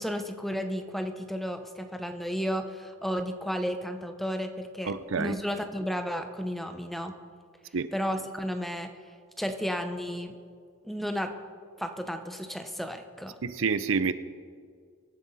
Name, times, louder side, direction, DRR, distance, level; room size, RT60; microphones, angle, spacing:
voice 1, 0.0-7.2 7.9-8.9 9.4-10.3 10.8-11.3 11.8-13.4, equal, ahead, 6 dB, 0.8 m, -33 dB
voice 2, 4.9-5.4 7.7-7.9 13.4-14.1, right 5 dB, 65° right, 13 dB, 0.5 m, -28 dB
23.5 x 11.0 x 4.2 m, 2.1 s
head